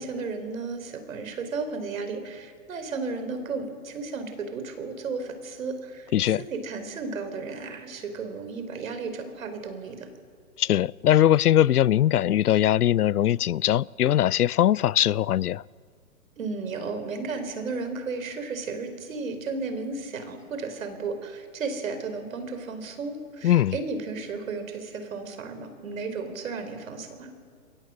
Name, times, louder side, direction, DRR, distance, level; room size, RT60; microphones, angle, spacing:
voice 1, 0.0-10.1 16.4-27.3, right 4 dB, 60° right, 4.5 m, -34 dB
voice 2, 6.1-6.4 10.6-15.6 23.4-23.8, left 11 dB, 80° left, 0.6 m, -21 dB
27.5 x 23.5 x 6.4 m
hypercardioid pair, 155°, 44 cm